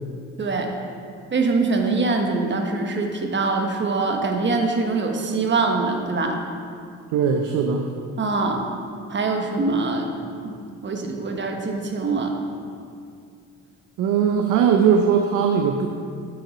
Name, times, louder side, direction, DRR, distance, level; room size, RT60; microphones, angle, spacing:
voice 1, 0.4-0.7 1.3-6.4 8.2-8.6 9.1-10.1 10.4-10.5 10.8-12.3, right 3 dB, 40° right, 3 dB, 1.1 m, -23 dB
voice 2, 7.1-7.9 14.0-15.9, right 7 dB, 90° right, 4 dB, 0.6 m, -19 dB
7.1 x 6.4 x 5.0 m, 2.3 s
cardioid pair, 90°, 30 cm